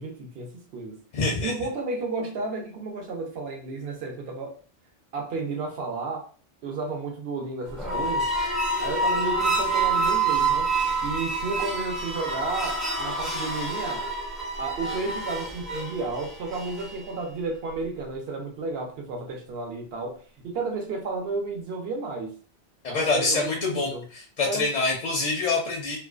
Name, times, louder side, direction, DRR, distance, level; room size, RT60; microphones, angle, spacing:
voice 1, 0.0-1.0 1.3-4.5 5.1-6.2 6.6-8.3 8.8-10.7 11.0-14.1 14.6-22.4 22.9-24.0 24.5-24.7, right 3 dB, 70° right, 2 dB, 0.8 m, -32 dB
voice 2, 1.1-1.5 22.8-23.9 24.4-26.0, left 3 dB, 55° left, 0 dB, 0.5 m, -25 dB
sound 1, 7.7-17.1, right 3 dB, ahead, 0.3 m, -27 dB
2.4 x 2.2 x 2.3 m, 0.41 s
omnidirectional pair, 1.1 m